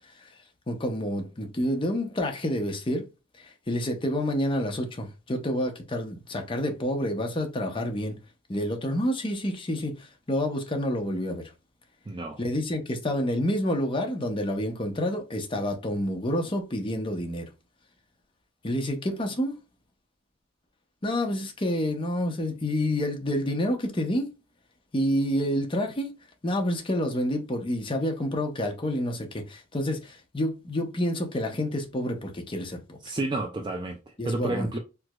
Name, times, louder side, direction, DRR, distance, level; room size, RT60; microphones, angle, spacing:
voice 1, 0.7-3.1 3.4-8.2 8.5-11.5 12.4-17.5 18.6-19.6 21.0-24.3 24.9-26.1 26.4-33.0 34.2-34.7, left 1 dB, 25° left, 0.6 m, -28 dB
voice 2, 12.1-12.4 33.0-34.8, right 2 dB, 20° right, 0.4 m, -31 dB
4.5 x 2.0 x 2.3 m
head